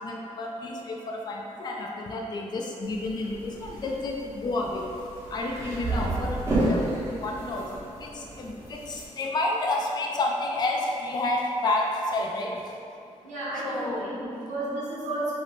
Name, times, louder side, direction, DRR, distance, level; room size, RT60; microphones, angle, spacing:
voice 1, 0.0-4.8 5.3-12.8 13.6-14.2, left 2 dB, 35° left, 0 dB, 0.3 m, -30 dB
sound 1, 2.8-9.0, right 1 dB, 20° right, 0.9 m, -32 dB
voice 2, 5.6-6.0 13.2-15.3, right 1 dB, 70° right, -8 dB, 1.0 m, -33 dB
3.1 x 2.1 x 4.0 m, 2.6 s
cardioid pair, 110°, 13 cm